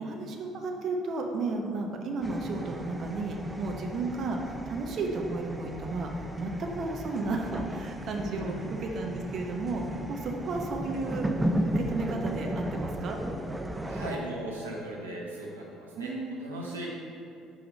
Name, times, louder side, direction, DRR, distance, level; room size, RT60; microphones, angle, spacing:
voice 1, 0.0-11.3 11.7-13.2 15.9-16.4, right 3 dB, 50° right, 2 dB, 0.8 m, -33 dB
sound 1, 2.2-14.2, right 1 dB, 10° right, 0.4 m, -35 dB
voice 2, 8.1-8.7 13.8-16.1 16.4-16.9, right 1 dB, 85° right, -4 dB, 1.0 m, -38 dB
4.9 x 4.8 x 5.3 m, 2.6 s
figure-of-eight pair, 55°, 0 cm